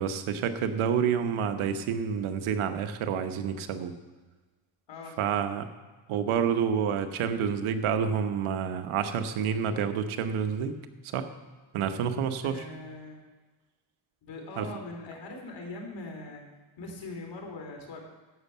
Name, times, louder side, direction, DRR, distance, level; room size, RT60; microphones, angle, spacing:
voice 1, 0.0-3.9 5.2-5.6 6.1-10.8 11.1-11.3 11.7-12.6 14.6-14.7, right 7 dB, 80° right, 8 dB, 1.2 m, -28 dB
voice 2, 4.9-5.3 12.4-13.2 14.2-16.4 16.8-18.0, left 2 dB, 60° left, 1 dB, 3.5 m, -41 dB
11.0 x 8.3 x 6.8 m, 1.3 s
cardioid pair, 100°, 49 cm